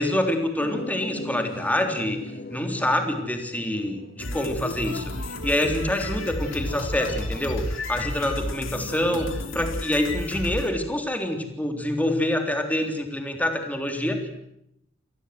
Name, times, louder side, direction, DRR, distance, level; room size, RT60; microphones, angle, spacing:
voice 1, 0.0-2.2 2.5-14.3, left 1 dB, 10° left, 5 dB, 3.5 m, -26 dB
sound 1, 0.6-5.8, left 1 dB, 50° left, 2.1 m, -40 dB
sound 2, 4.2-10.7, left 1 dB, 75° left, 3.4 m, -32 dB
27.0 x 20.0 x 8.0 m, 0.78 s
head